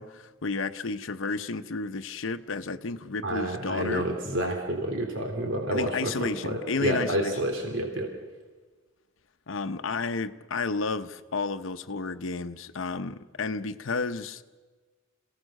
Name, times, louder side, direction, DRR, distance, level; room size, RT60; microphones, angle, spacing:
voice 1, 0.0-4.1 5.7-7.3 9.5-14.4, left 4 dB, 80° left, 9 dB, 0.8 m, -32 dB
voice 2, 3.2-8.1, right 1 dB, 80° right, 3 dB, 3.1 m, -29 dB
27.5 x 17.0 x 6.5 m, 1.4 s
head